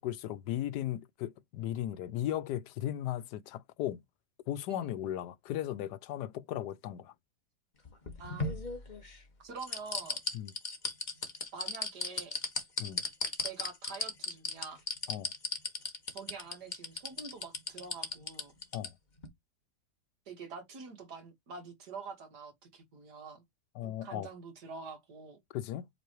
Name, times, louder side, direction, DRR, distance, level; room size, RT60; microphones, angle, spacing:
voice 1, 0.0-4.0 4.5-7.1 10.3-10.5 12.8-13.0 15.1-15.3 18.7-18.9 23.8-24.3 25.5-25.9, left 12 dB, 85° left, 1.2 m, -36 dB
sound 1, 7.8-9.2 9.6-18.9 19.2-19.3, left 3 dB, 30° left, 1.5 m, -35 dB
voice 2, 8.2-8.6 9.4-10.2 11.5-12.4 13.4-14.8 16.1-18.5 20.3-23.4 23.8-25.4, right 5 dB, 75° right, 2.3 m, -46 dB
8.3 x 4.0 x 3.0 m
omnidirectional pair, 1.7 m